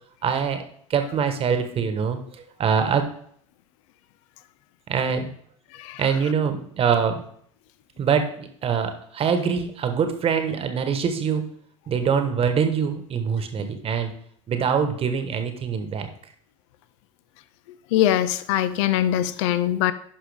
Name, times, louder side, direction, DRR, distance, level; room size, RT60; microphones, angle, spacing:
voice 1, 0.2-0.6 0.9-3.0 4.9-5.3 6.0-7.2 8.0-11.5 11.9-14.1 14.5-16.1, right 6 dB, 35° right, 7 dB, 1.2 m, -24 dB
voice 2, 17.9-19.9, left 12 dB, 65° left, 14 dB, 0.4 m, -22 dB
10.0 x 5.5 x 3.4 m, 0.64 s
hypercardioid pair, 85°, 17 cm